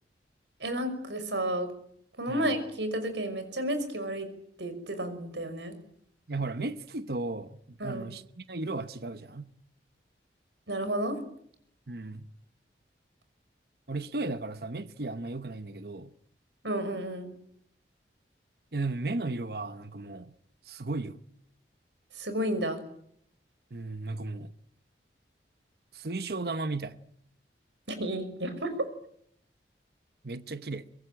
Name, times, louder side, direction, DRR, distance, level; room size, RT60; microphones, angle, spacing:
voice 1, 0.6-1.7 2.2-4.3 4.6-5.7 7.8-8.1 10.7-11.2 16.6-17.3 22.1-22.8 27.9-28.8, right 1 dB, 85° right, 5.7 m, -32 dB
voice 2, 6.3-9.5 11.9-12.3 13.9-16.1 18.7-20.3 20.6-21.2 23.7-24.5 25.9-27.0 30.2-30.9, right 2 dB, 60° right, 1.0 m, -35 dB
24.0 x 21.5 x 9.0 m
head